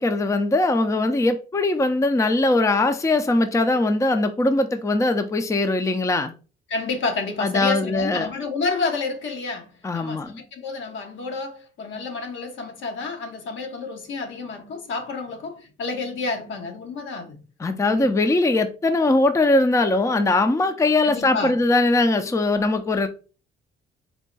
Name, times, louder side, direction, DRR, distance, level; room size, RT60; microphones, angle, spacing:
voice 1, 0.0-6.3 7.4-8.3 9.8-10.4 17.6-23.1, left 2 dB, 15° left, 0.5 m, -21 dB
voice 2, 6.7-17.4 17.9-18.1 21.0-21.6, left 4 dB, 75° left, 1.2 m, -30 dB
4.5 x 2.2 x 3.9 m
cardioid pair, 90°, 20 cm